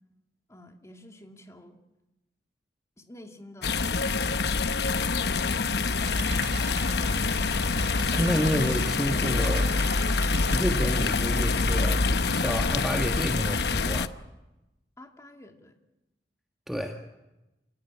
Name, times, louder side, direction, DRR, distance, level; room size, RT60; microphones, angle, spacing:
voice 1, 0.5-1.8 3.0-6.8 15.0-15.8, left 1 dB, 15° left, 4 dB, 2.5 m, -50 dB
sound 1, 3.6-14.1, left 3 dB, 65° left, 0.9 m, -26 dB
Bird, 5.9-13.6, right 4 dB, 90° right, 6.6 m, -43 dB
voice 2, 8.1-9.7 10.5-14.1 16.7-17.0, equal, ahead, 2 dB, 1.6 m, -30 dB
29.0 x 17.5 x 9.8 m, 0.99 s
head